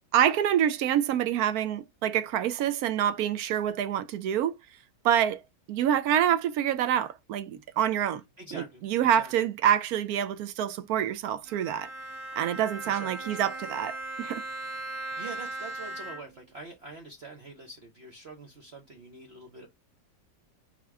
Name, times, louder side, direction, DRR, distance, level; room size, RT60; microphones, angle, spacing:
voice 1, 0.1-4.5 5.0-5.4 5.7-8.2 8.5-11.9 12.3-14.4, right 10 dB, 70° right, 1.0 m, -26 dB
voice 2, 8.4-9.3 12.8-13.5 15.2-19.7, right 3 dB, 45° right, 1.0 m, -45 dB
Bowed string instrument, 11.4-16.5, right 2 dB, 10° right, 1.8 m, -38 dB
4.0 x 2.9 x 4.6 m
omnidirectional pair, 1.8 m